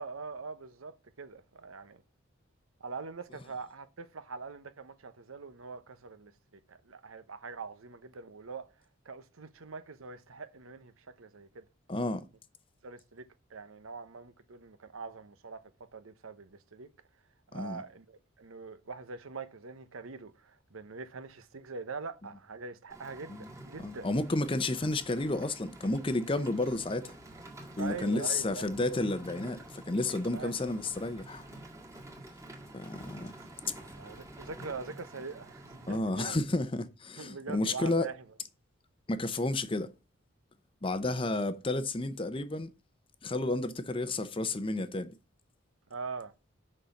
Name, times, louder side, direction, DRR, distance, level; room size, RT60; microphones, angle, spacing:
voice 1, 0.0-2.0 2.8-8.7 9.0-11.7 12.8-16.9 17.5-24.1 27.8-28.7 30.3-30.5 33.8-36.4 37.2-38.2 45.9-46.3, right 4 dB, 90° right, 0.9 m, -43 dB
voice 2, 11.9-12.3 17.5-17.8 23.3-23.5 23.8-27.1 27.8-31.5 32.7-33.3 35.9-38.1 39.1-39.9 40.8-42.7 43.2-45.1, left 2 dB, 25° left, 0.6 m, -31 dB
Rain, 22.9-36.0, right 1 dB, 15° right, 1.7 m, -49 dB
6.4 x 5.6 x 7.0 m
head